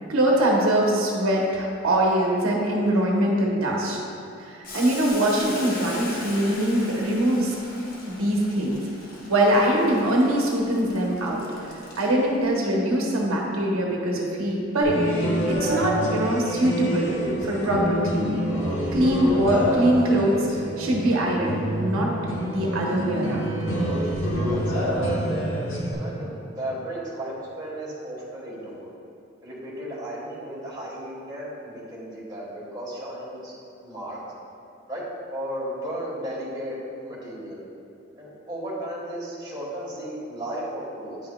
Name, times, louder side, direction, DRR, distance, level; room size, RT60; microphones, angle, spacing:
voice 1, 0.1-4.0 4.4-7.6 8.1-8.8 9.3-11.4 11.7-15.0 15.5-17.2 17.4-18.4 18.9-22.1 22.4-23.5, right 1 dB, 85° right, -2 dB, 0.9 m, -23 dB
Boiling, 4.6-12.4, left 2 dB, 45° left, 0.9 m, -40 dB
sound 1, 14.8-25.9, equal, 65° left, 1.1 m, -27 dB
voice 2, 24.4-25.0 25.9-28.9 29.4-33.5 33.8-34.2 34.9-37.6 38.2-41.2, right 1 dB, 20° right, -7 dB, 1.4 m, -35 dB
9.5 x 5.7 x 2.3 m, 2.5 s
head